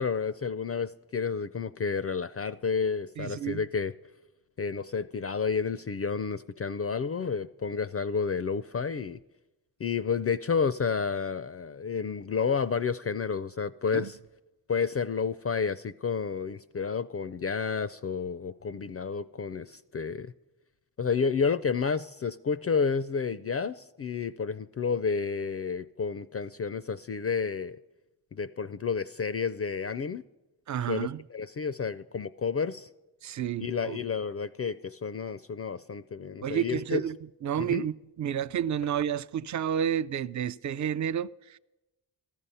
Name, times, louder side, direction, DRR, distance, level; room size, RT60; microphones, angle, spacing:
voice 1, 0.0-3.9 4.6-9.2 9.8-14.2 14.7-20.3 21.0-27.8 28.3-30.2 30.9-32.9 33.6-37.0 37.6-37.8, left 5 dB, 30° left, 0.4 m, -30 dB
voice 2, 3.2-3.6 13.9-14.1 30.7-31.2 33.2-34.0 36.4-37.1 37.4-41.6, right 9 dB, 40° right, 0.5 m, -30 dB
14.0 x 12.0 x 5.6 m
supercardioid pair, 45°, 47 cm